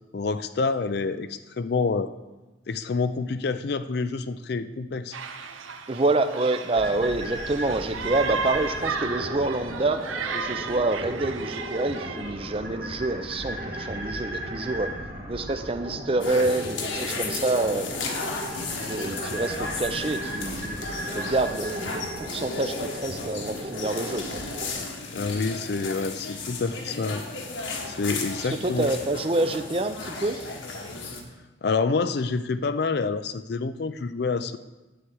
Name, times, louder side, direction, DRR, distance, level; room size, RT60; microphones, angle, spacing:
voice 1, 0.1-2.1 2.7-5.1 25.1-27.2 27.9-28.9 31.6-34.6, left 4 dB, 55° left, 12 dB, 0.4 m, -27 dB
sound 1, 5.1-12.6, right 5 dB, 85° right, 0.7 m, -34 dB
voice 2, 5.9-10.1 10.3-14.9 15.3-18.0 18.7-20.9 21.1-24.4 28.4-30.5, right 2 dB, 30° right, 9 dB, 0.5 m, -27 dB
sound 2, 6.7-24.7, right 1 dB, 45° right, 1.8 m, -36 dB
sound 3, 16.2-31.2, left 3 dB, 75° left, 1.4 m, -34 dB
10.0 x 4.8 x 7.9 m, 1.1 s
head